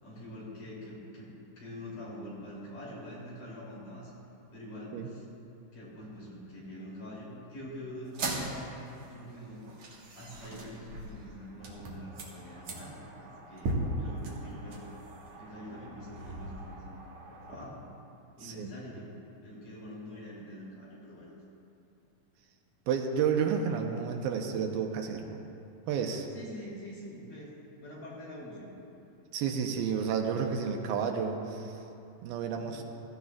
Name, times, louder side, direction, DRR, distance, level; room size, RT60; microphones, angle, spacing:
voice 1, 0.0-4.1 4.5-5.3 5.7-8.7 9.1-9.7 10.1-14.9 15.4-17.8 18.4-21.3 26.3-27.5 27.8-28.8 32.5-32.8, left 1 dB, 60° left, -6 dB, 4.6 m, -45 dB
sound 1, 8.0-17.6, right 2 dB, 55° right, 2.5 m, -39 dB
voice 2, 22.9-25.4 25.9-26.3 29.3-31.7 32.2-32.8, right 6 dB, 85° right, 3 dB, 2.6 m, -31 dB
16.5 x 15.0 x 2.4 m, 2.7 s
omnidirectional pair, 4.2 m